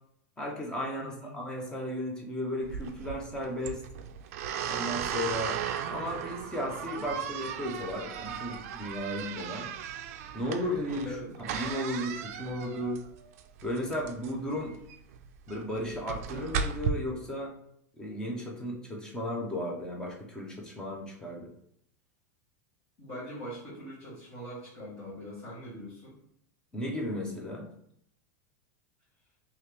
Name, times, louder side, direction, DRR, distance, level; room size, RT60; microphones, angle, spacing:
voice 1, 0.4-3.8 4.7-5.6 5.9-9.7 10.3-11.1 11.4-13.0 13.6-14.8 15.5-17.5 18.0-21.5 26.7-27.7, left 1 dB, 10° left, -1 dB, 0.6 m, -35 dB
voice 2, 1.0-1.4 11.0-11.5 23.0-26.2, equal, 35° left, -10 dB, 1.5 m, -42 dB
sound 1, 2.6-16.9, right 8 dB, 60° right, 0.3 m, -36 dB
3.1 x 2.8 x 3.3 m, 0.70 s
supercardioid pair, 160°, 9 cm